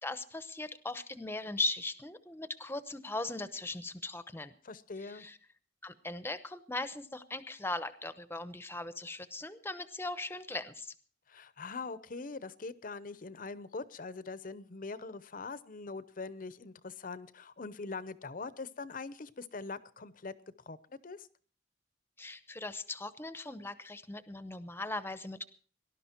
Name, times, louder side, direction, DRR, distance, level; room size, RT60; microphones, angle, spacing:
voice 1, 0.0-4.5 5.0-5.4 5.8-10.9 22.2-25.5, left 2 dB, 15° left, 13 dB, 0.9 m, -39 dB
voice 2, 4.6-5.3 11.3-20.3 20.7-20.8 21.0-21.3, left 4 dB, 50° left, 16 dB, 0.8 m, -42 dB
19.0 x 12.0 x 4.5 m, 0.43 s
head